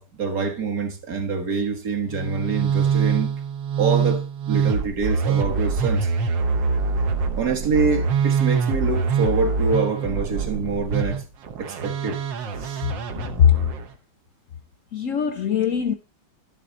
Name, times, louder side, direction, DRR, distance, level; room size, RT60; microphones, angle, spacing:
voice 1, 0.0-3.3 3.8-6.1 7.4-11.2 11.6-12.2 12.6-12.8, right 4 dB, 55° right, 1.7 m, -25 dB
Musical instrument, 2.1-13.9, right 5 dB, 90° right, 1.7 m, -24 dB
voice 2, 13.2-13.6 14.9-15.9, left 8 dB, 65° left, 0.8 m, -20 dB
11.5 x 7.7 x 3.9 m
omnidirectional pair, 1.9 m